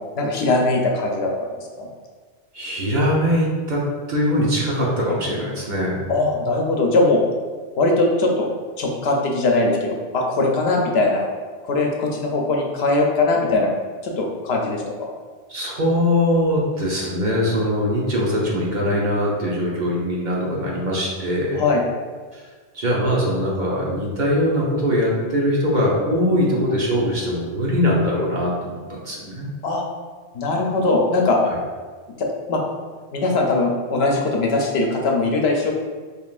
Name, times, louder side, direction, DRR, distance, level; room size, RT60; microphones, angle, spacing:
voice 1, 0.1-1.3 1.8-1.9 6.1-7.2 7.8-8.5 8.8-11.2 11.6-13.7 14.0-15.1 21.5-21.8 29.6-29.8 30.3-31.4 32.5-32.6 33.1-35.7, left 2 dB, 75° left, 0 dB, 0.9 m, -20 dB
voice 2, 2.5-6.0 15.5-21.6 22.3-22.4 22.7-29.5, equal, 50° right, -4 dB, 1.0 m, -22 dB
5.3 x 3.3 x 2.4 m, 1.5 s
omnidirectional pair, 1.1 m